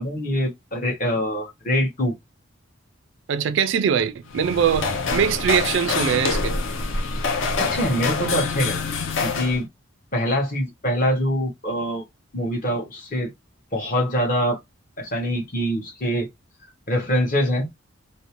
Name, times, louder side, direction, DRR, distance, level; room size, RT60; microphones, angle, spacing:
voice 1, 0.0-2.2 7.2-7.3 7.6-8.8 9.2-9.7 10.1-12.0 12.3-13.3 13.7-14.6 15.0-16.3 16.9-17.7, equal, 40° left, 0.9 m, -24 dB
voice 2, 3.3-6.5, right 7 dB, 60° right, 0.3 m, -22 dB
sound 1, 4.3-9.6, left 4 dB, 65° left, 0.5 m, -26 dB
2.5 x 2.0 x 2.9 m
head